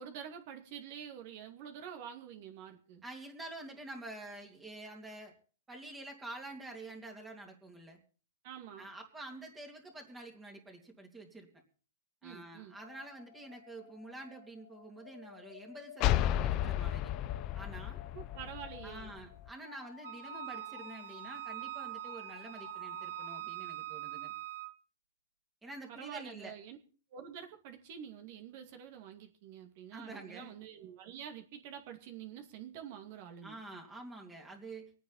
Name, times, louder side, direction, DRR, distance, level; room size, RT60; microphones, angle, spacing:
voice 1, 0.0-3.0 8.4-8.9 12.2-12.8 18.1-19.1 25.9-26.8 27.1-33.6, right 9 dB, 50° right, 5 dB, 2.4 m, -47 dB
voice 2, 3.0-5.3 5.7-8.0 8.8-11.5 12.2-17.1 17.5-18.0 18.8-24.3 25.6-26.5 29.9-30.5 33.4-34.9, right 2 dB, 10° right, 1 dB, 2.7 m, -48 dB
sound 1, 12.7-23.4, left 9 dB, 80° left, 2.9 m, -53 dB
sound 2, 16.0-19.5, left 12 dB, 35° left, 0.6 m, -33 dB
Wind instrument woodwind instrument, 20.0-24.7, right 16 dB, 75° right, 1.1 m, -43 dB
25.5 x 9.3 x 4.1 m, 0.38 s
hypercardioid pair, 140°, 0 cm